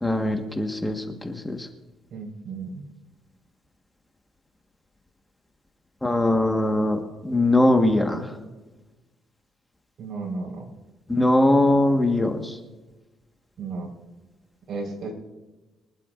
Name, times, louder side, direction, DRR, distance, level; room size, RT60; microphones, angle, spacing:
voice 1, 0.0-1.7 6.0-8.3 11.1-12.6, left 1 dB, 10° left, 3 dB, 1.5 m, -21 dB
voice 2, 2.1-2.8 10.0-10.7 13.6-13.9 14.7-15.1, right 3 dB, 60° right, -1 dB, 4.5 m, -33 dB
24.5 x 11.5 x 2.5 m, 1.1 s
cardioid pair, 105°, 0 cm